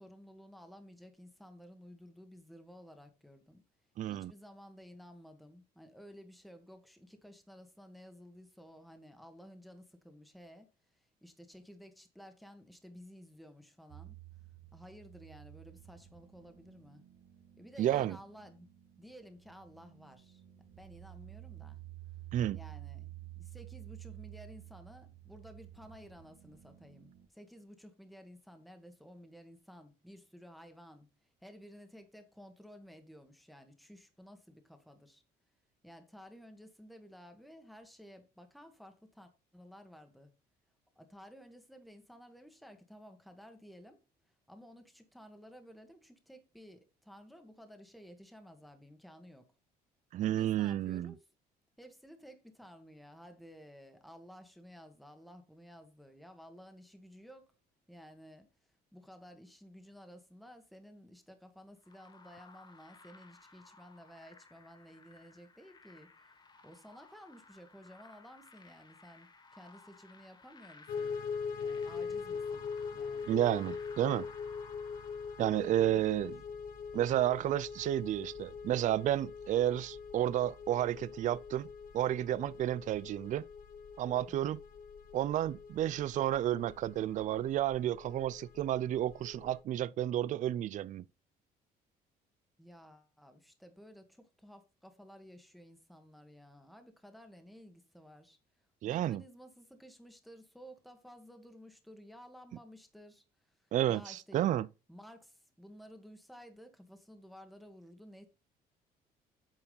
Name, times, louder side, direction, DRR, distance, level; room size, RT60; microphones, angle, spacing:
voice 1, 0.0-3.6 4.0-14.2 14.7-17.0 17.6-18.7 19.0-20.4 20.8-21.8 22.5-35.2 35.8-40.3 41.0-49.5 50.2-51.3 51.8-57.5 57.9-58.5 58.9-71.2 71.6-73.4 75.7-76.6 84.3-84.6 92.6-98.4 98.8-104.5 104.9-108.3, equal, ahead, 1.6 m, -54 dB
voice 2, 4.0-4.3 17.8-18.2 22.3-22.6 50.1-51.1 73.3-74.3 75.4-76.3 76.9-81.7 81.9-83.5 84.0-84.6 85.1-91.0 98.8-99.2 103.7-104.7, right 12 dB, 45° right, 0.4 m, -31 dB
sound 1, 13.9-27.3, right 15 dB, 75° right, 1.9 m, -52 dB
sound 2, 61.8-76.2, left 3 dB, 25° left, 1.4 m, -59 dB
sound 3, 70.9-89.6, left 5 dB, 55° left, 1.1 m, -43 dB
8.7 x 4.7 x 5.4 m
cardioid pair, 110°, 17 cm